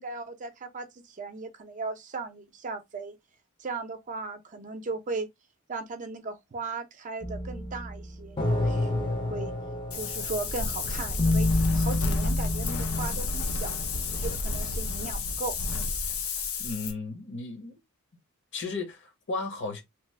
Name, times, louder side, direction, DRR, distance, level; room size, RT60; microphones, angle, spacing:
voice 1, 0.0-3.2 3.6-5.3 5.7-9.5 10.0-13.7 14.1-15.6, right 3 dB, 35° right, 0.5 m, -37 dB
sound 1, 7.2-13.1, left 2 dB, 20° left, 0.6 m, -28 dB
Wind, 9.9-16.9, left 3 dB, 80° left, 0.7 m, -31 dB
voice 2, 16.6-17.8 18.5-19.8, left 3 dB, 55° left, 0.9 m, -35 dB
3.1 x 2.0 x 3.1 m
head